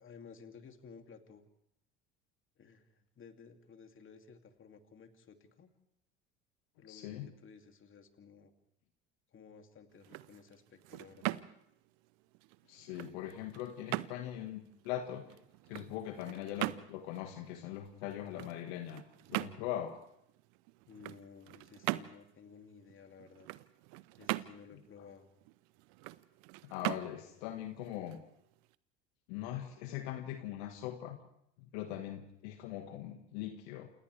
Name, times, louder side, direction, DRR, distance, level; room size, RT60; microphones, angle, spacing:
voice 1, 0.0-1.4 2.6-5.7 6.8-8.5 9.3-11.4 20.9-23.5 24.2-25.3, left 6 dB, 35° left, 5 dB, 2.7 m, -55 dB
voice 2, 6.9-7.3 12.7-15.3 15.7-19.0 19.3-20.0 26.6-28.2 29.3-31.2 31.6-33.9, left 12 dB, 70° left, 6 dB, 1.8 m, -41 dB
sound 1, 9.9-28.8, right 21 dB, 65° right, 0.8 m, -42 dB
28.5 x 28.5 x 3.4 m, 0.77 s
hypercardioid pair, 70°, 33 cm